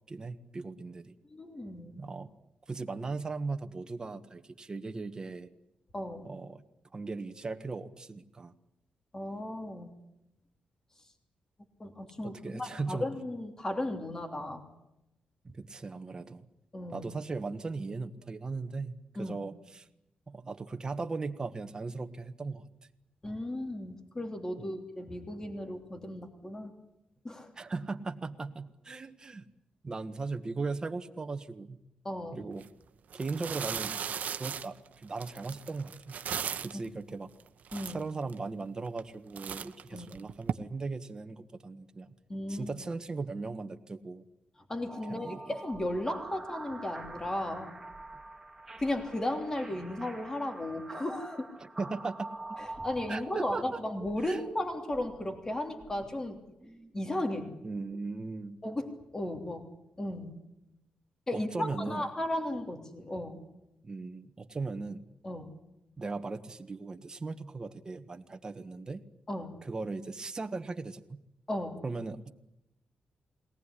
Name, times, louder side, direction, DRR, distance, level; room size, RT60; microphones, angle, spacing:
voice 1, 0.1-1.1 2.0-2.3 2.7-5.5 6.2-6.6 6.9-8.5 12.2-13.1 15.4-16.4 16.9-19.9 20.3-22.7 24.6-24.8 27.5-29.4 29.8-31.8 32.3-32.7 33.1-33.9 34.4-36.1 36.6-37.3 37.9-42.1 42.5-44.2 45.1-45.5 51.6-52.6 53.1-53.8 54.2-54.4 57.6-58.6 61.3-62.0 63.8-65.0 66.0-69.0 69.6-71.2 71.8-72.3, right 3 dB, 30° right, 7 dB, 1.5 m, -38 dB
voice 2, 1.3-2.0 5.9-6.3 9.1-9.9 11.8-14.6 16.7-17.1 19.1-19.4 23.2-26.7 27.2-27.5 32.0-32.5 37.7-38.0 39.9-40.1 42.3-42.7 44.7-47.8 48.8-51.5 52.6-56.4 56.9-57.5 58.6-59.7 60.0-60.4 61.3-63.4 65.2-65.5 69.3-69.5 71.5-71.8, left 1 dB, 20° left, 5 dB, 3.2 m, -35 dB
sound 1, 32.5-32.7 33.1-36.9 37.4-37.5 37.7-38.4 38.9-39.1 39.4-40.5, right 8 dB, 70° right, 1.0 m, -37 dB
Indian Chant, 44.9-58.0, right 2 dB, 10° right, 2.9 m, -46 dB
22.0 x 18.5 x 10.0 m, 0.86 s
wide cardioid pair, 120°, 3 cm